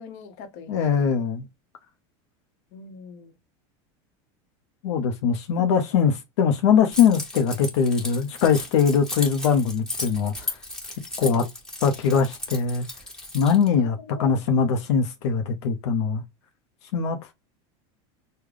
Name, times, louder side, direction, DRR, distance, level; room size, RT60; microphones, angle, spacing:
voice 1, 0.0-1.0 2.7-3.3 5.6-5.7 11.2-11.4 13.8-14.4, left 5 dB, 50° left, 0.9 m, -41 dB
voice 2, 0.7-1.4 4.8-10.6 11.2-11.4 11.8-12.9 13.3-16.2 16.9-17.2, left 6 dB, 80° left, 0.7 m, -22 dB
Keys jangling, 6.9-13.7, left 2 dB, 5° left, 1.2 m, -35 dB
3.7 x 2.2 x 3.2 m
supercardioid pair, 165°, 14 cm